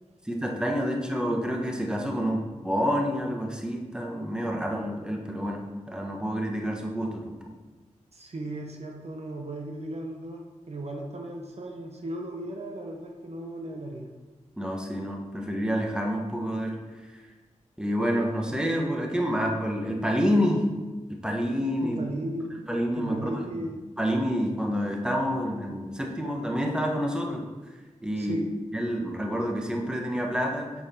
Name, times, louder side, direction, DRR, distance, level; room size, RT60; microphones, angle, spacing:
voice 1, 0.2-7.3 14.6-16.8 17.8-20.7 21.2-22.0 22.7-23.7 24.0-27.5 28.0-28.4 28.7-30.7, equal, 5° right, 1 dB, 1.2 m, -28 dB
voice 2, 8.1-14.1 21.8-22.5 23.0-23.8 28.2-28.6, right 1 dB, 55° right, 2 dB, 0.9 m, -36 dB
7.1 x 4.9 x 4.3 m, 1.2 s
cardioid pair, 50°, 13 cm